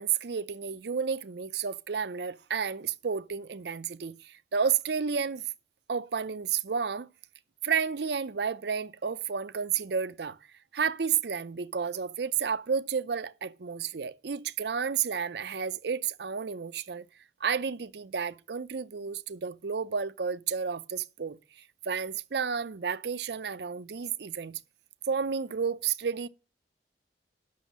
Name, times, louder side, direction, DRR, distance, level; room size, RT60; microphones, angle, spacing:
voice 1, 0.0-5.4 5.9-7.1 7.6-10.4 10.7-17.1 17.4-21.4 21.8-24.6 25.1-26.3, right 6 dB, 70° right, 0.5 m, -31 dB
8.3 x 6.3 x 7.2 m
head